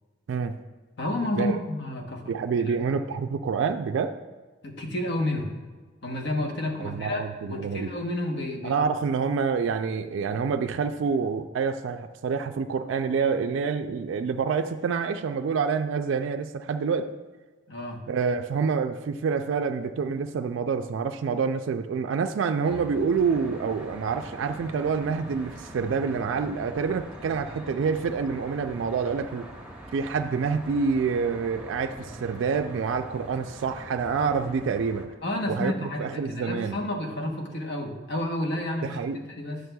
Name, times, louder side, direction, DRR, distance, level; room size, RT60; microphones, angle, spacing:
voice 1, 1.0-2.2 4.6-5.6 6.0-7.2 7.5-8.8 17.7-18.0 35.2-39.0 39.3-39.6, left 1 dB, 65° left, 2 dB, 1.0 m, -30 dB
voice 2, 2.3-4.2 6.8-7.9 8.6-17.1 18.1-29.5 29.9-35.1 35.5-36.8 38.8-39.3, right 5 dB, 75° right, 7 dB, 0.3 m, -27 dB
Traffic noise roadway noise, 22.6-35.1, equal, 5° right, 0.8 m, -43 dB
9.3 x 6.5 x 2.2 m, 1.3 s
head